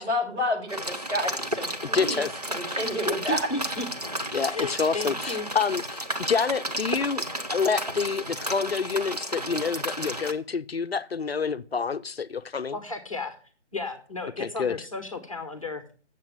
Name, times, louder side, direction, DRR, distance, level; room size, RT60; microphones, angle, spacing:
voice 1, 0.0-3.4, left 1 dB, 65° right, 4.7 m, -30 dB
sound 1, 0.7-10.3, right 1 dB, 35° right, 0.6 m, -32 dB
voice 2, 1.9-2.3 2.7-3.0 4.3-7.2 7.5-12.7 14.4-14.8, left 5 dB, 55° left, 0.5 m, -28 dB
voice 3, 3.1-3.9 4.5-5.5 12.7-13.4 13.7-15.8, left 3 dB, 30° left, 0.9 m, -33 dB
7.6 x 7.3 x 6.0 m
hypercardioid pair, 180°, 36 cm